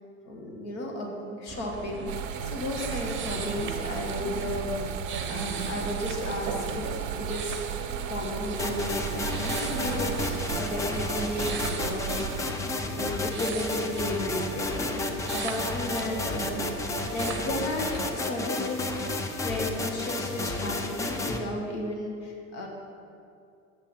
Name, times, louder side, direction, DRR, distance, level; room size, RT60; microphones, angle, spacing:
voice 1, 0.2-2.1 2.4-7.6 8.1-12.4 12.9-19.1 19.4-22.7, left 1 dB, 60° left, -1 dB, 1.4 m, -34 dB
sound 1, 1.5-18.1, right 5 dB, 30° right, 0.7 m, -38 dB
sound 2, 2.1-12.4, right 9 dB, 70° right, 0.6 m, -35 dB
sound 3, 8.6-21.4, left 2 dB, 10° left, 0.4 m, -32 dB
7.3 x 7.1 x 4.3 m, 2.4 s
figure-of-eight pair, 75°, 41 cm